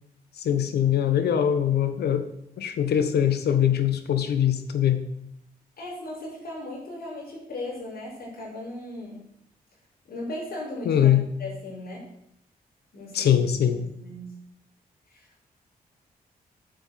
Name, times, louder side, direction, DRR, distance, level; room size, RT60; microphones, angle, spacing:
voice 1, 0.4-2.2 2.6-5.0 10.8-11.3 13.1-13.8, left 9 dB, 90° left, 10 dB, 1.3 m, -22 dB
voice 2, 5.8-9.2 10.1-11.1 11.4-12.0 12.9-13.4 13.7-14.4 15.1-15.4, left 1 dB, 70° left, -5 dB, 5.9 m, -37 dB
8.7 x 8.1 x 7.7 m, 0.76 s
cardioid pair, 65°, 16 cm